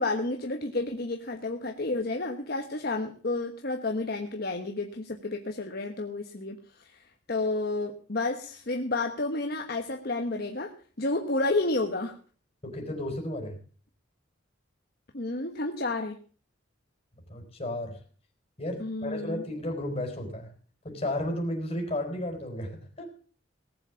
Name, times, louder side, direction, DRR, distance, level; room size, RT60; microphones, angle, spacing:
voice 1, 0.0-12.2 15.1-16.2 18.8-19.4, left 2 dB, 55° left, 4 dB, 1.3 m, -31 dB
voice 2, 12.6-13.6 17.3-18.0 18.6-20.5 20.8-23.1, left 1 dB, 30° left, 2 dB, 4.6 m, -33 dB
18.5 x 7.7 x 7.1 m, 0.42 s
head